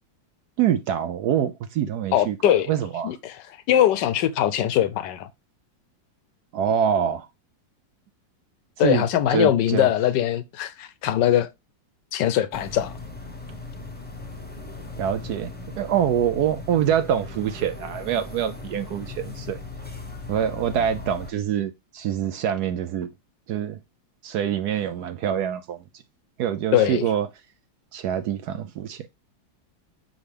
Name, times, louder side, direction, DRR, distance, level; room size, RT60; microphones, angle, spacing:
voice 1, 0.6-3.1 6.5-7.3 8.8-9.9 15.0-19.6 20.3-23.1 23.5-23.8 24.2-25.8 26.4-27.3 27.9-29.1, right 9 dB, 70° right, 1.0 m, -25 dB
voice 2, 2.1-2.7 3.0-3.4 3.7-5.3 8.8-11.5 12.1-12.9 26.7-27.0, left 11 dB, 75° left, 1.2 m, -21 dB
sound 1, 12.5-21.3, left 3 dB, 5° left, 0.8 m, -38 dB
6.0 x 5.1 x 3.4 m
omnidirectional pair, 2.0 m